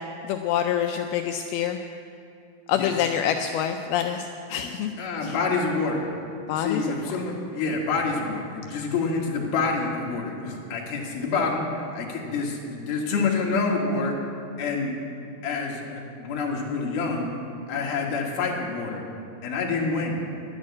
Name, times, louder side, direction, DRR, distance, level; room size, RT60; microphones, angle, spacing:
voice 1, 0.3-1.8 2.7-4.9 5.2-5.4 6.5-6.9, left 9 dB, 85° left, 5 dB, 2.2 m, -26 dB
voice 2, 5.0-6.1 6.5-14.1 14.6-14.9 15.4-17.3 17.7-19.0 19.4-20.2, left 4 dB, 70° left, -1 dB, 3.2 m, -27 dB
11.5 x 8.8 x 8.5 m, 2.6 s
omnidirectional pair, 4.8 m